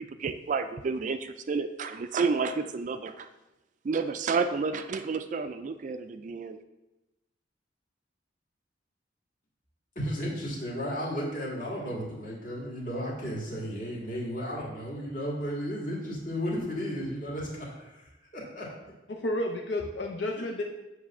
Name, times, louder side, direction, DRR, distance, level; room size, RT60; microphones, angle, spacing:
voice 1, 0.0-3.3 3.8-6.6, right 4 dB, 40° right, 10 dB, 0.3 m, -30 dB
voice 2, 10.0-18.7, equal, 45° left, -3 dB, 2.2 m, -34 dB
voice 3, 19.1-20.6, left 1 dB, 65° left, 1 dB, 0.6 m, -31 dB
7.5 x 3.3 x 6.1 m, 1.0 s
head